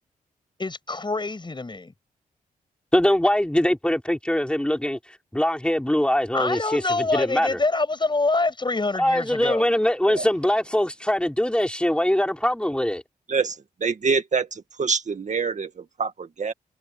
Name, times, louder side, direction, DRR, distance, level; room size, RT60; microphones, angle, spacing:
voice 1, 0.6-1.9 6.3-9.7, left 3 dB, 30° left, 6.8 m, -25 dB
voice 2, 2.9-7.6 9.0-13.0, left 1 dB, 5° left, 4.6 m, -22 dB
voice 3, 13.3-16.5, right 5 dB, 50° right, 1.9 m, -26 dB
cardioid pair, 60°, 15 cm